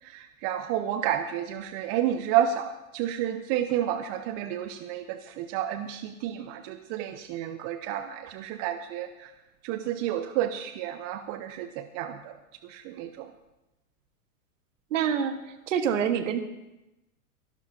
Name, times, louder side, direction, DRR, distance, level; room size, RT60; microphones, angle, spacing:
voice 1, 0.0-9.3 9.6-12.3 12.6-13.3, right 11 dB, 35° right, 9 dB, 0.7 m, -30 dB
voice 2, 14.9-15.3 15.7-16.4, right 8 dB, 60° right, 8 dB, 1.6 m, -25 dB
23.5 x 12.5 x 2.8 m, 0.95 s
figure-of-eight pair, 100°, 43 cm